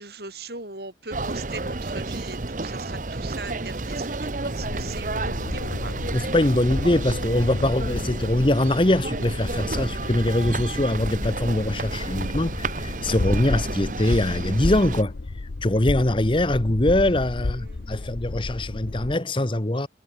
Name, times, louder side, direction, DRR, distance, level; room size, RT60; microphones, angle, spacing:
voice 1, 0.0-6.0 17.4-18.1, right 3 dB, 60° right, 7.8 m, -39 dB
sound 1, 1.1-15.0, right 2 dB, 45° right, 1.0 m, -31 dB
sound 2, 4.6-19.2, left 2 dB, 70° left, 0.7 m, -32 dB
voice 2, 6.1-19.9, left 1 dB, 30° left, 1.1 m, -23 dB
head